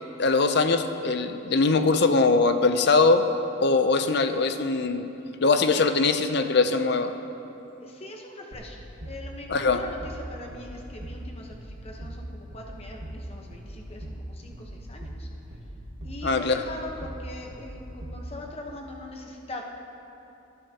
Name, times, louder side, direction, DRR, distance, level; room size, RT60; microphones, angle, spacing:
voice 1, 0.2-3.3 3.6-5.1 5.4-7.1 9.5-9.8 16.2-16.6, left 3 dB, 50° left, 9 dB, 0.5 m, -22 dB
voice 2, 7.8-8.8 9.1-15.3 16.0-19.6, left 2 dB, 30° left, 1 dB, 1.0 m, -42 dB
sound 1, 8.5-18.3, right 1 dB, 70° right, 1.9 m, -39 dB
18.0 x 10.5 x 2.9 m, 2.9 s
head